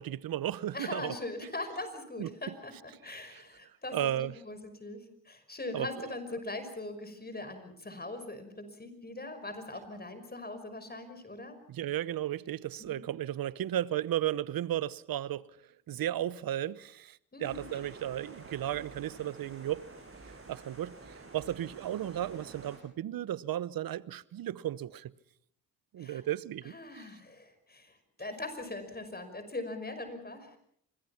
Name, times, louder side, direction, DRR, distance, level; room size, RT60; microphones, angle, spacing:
voice 1, 0.0-1.1 2.2-2.3 3.1-3.4 3.9-4.3 5.7-5.9 11.7-15.5 15.9-19.8 20.2-25.1 25.9-27.1, right 12 dB, 65° right, 0.9 m, -34 dB
voice 2, 0.7-2.7 3.0-11.6 12.8-13.0 17.3-17.8 26.0-26.2 26.6-30.6, left 2 dB, 25° left, 5.7 m, -41 dB
sound 1, 17.4-22.8, right 3 dB, 35° right, 7.4 m, -50 dB
27.0 x 21.5 x 5.8 m
supercardioid pair, 55°, 37 cm